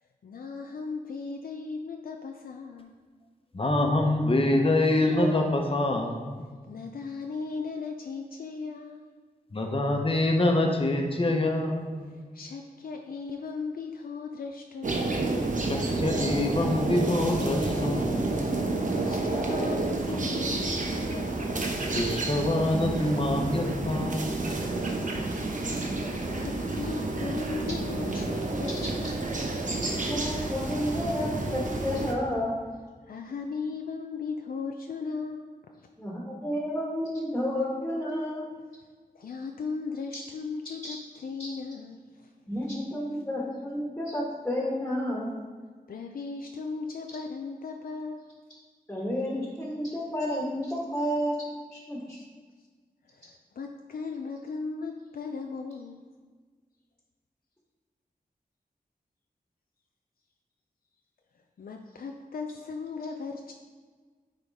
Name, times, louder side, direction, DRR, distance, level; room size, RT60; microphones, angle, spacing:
voice 1, 0.0-2.9 6.7-9.1 12.1-15.3 18.9-21.4 24.8-25.5 26.0-29.5 33.1-35.5 35.7-35.9 39.1-42.3 45.9-48.3 52.1-52.2 52.6-52.7 53.0-56.0 61.6-63.5, left 4 dB, 70° left, 3 dB, 0.5 m, -37 dB
voice 2, 3.5-6.5 9.5-12.1 15.6-18.5 21.8-24.4, left 1 dB, 35° left, 2 dB, 1.0 m, -26 dB
sound 1, 14.8-32.1, right 2 dB, 55° right, 0.9 m, -30 dB
voice 3, 29.8-32.5 36.0-38.5 40.8-41.0 41.4-41.5 42.5-45.3 48.9-51.4 51.7-52.2, equal, 5° left, -4 dB, 1.6 m, -31 dB
9.6 x 3.8 x 3.6 m, 1.5 s
wide cardioid pair, 70°, 16 cm